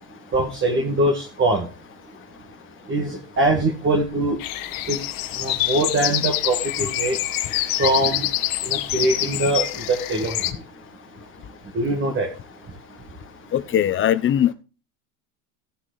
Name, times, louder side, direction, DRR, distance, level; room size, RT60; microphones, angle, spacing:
voice 1, 0.3-1.7 2.9-4.4 4.9-5.0 5.4-7.2 7.8-8.3 8.6-10.5 11.7-12.3, right 2 dB, 25° right, 2.1 m, -22 dB
sound 1, 4.4-10.5, left 15 dB, 50° left, 1.3 m, -26 dB
voice 2, 13.5-14.5, left 10 dB, 25° left, 0.8 m, -20 dB
14.5 x 5.9 x 4.0 m
hypercardioid pair, 100°, 45 cm